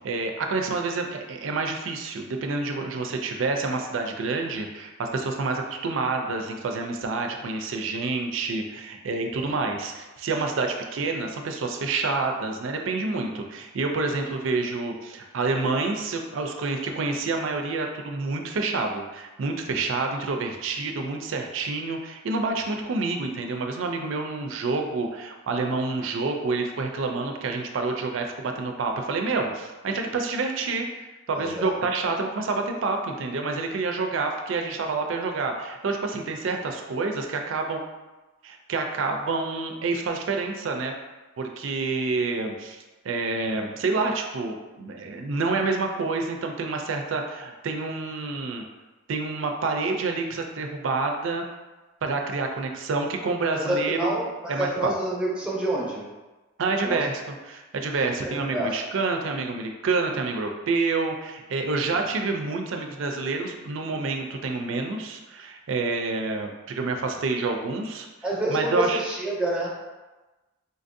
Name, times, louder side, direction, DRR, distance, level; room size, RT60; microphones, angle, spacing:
voice 1, 0.0-37.8 38.4-40.9 41.4-48.6 49.1-51.4 52.0-54.2 54.5-54.9 56.6-57.2 57.5-68.1 68.5-69.0, right 3 dB, 70° right, 3 dB, 0.4 m, -28 dB
voice 2, 31.3-31.7 53.5-56.0 56.8-57.0 58.0-58.8 61.9-62.0 68.2-69.7, right 1 dB, 5° right, -4 dB, 0.7 m, -28 dB
3.9 x 2.5 x 2.6 m, 1.1 s
head